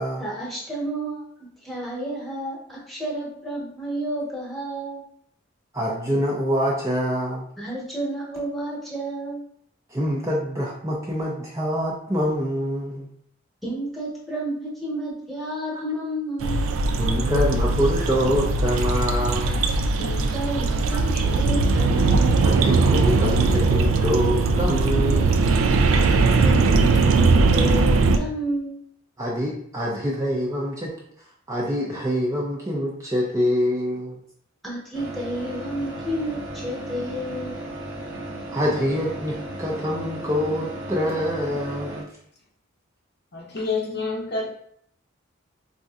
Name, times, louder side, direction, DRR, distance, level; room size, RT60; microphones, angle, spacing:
voice 1, 0.2-5.0 7.6-9.4 13.6-16.7 20.0-22.4 25.9-28.8 34.6-37.6, right 1 dB, ahead, -6 dB, 1.0 m, -31 dB
voice 2, 5.7-7.4 9.9-13.1 15.7-15.8 17.0-19.7 20.9-21.0 22.4-25.3 29.2-30.9 31.5-34.1 38.5-42.0, equal, 15° right, -4 dB, 0.4 m, -25 dB
sound 1, 16.4-28.2, right 3 dB, 85° right, 0.3 m, -20 dB
sound 2, 34.9-42.0, right 1 dB, 60° right, 0.9 m, -35 dB
voice 3, 43.3-44.5, left 4 dB, 50° left, -1 dB, 0.6 m, -28 dB
4.1 x 2.6 x 2.4 m, 0.67 s
head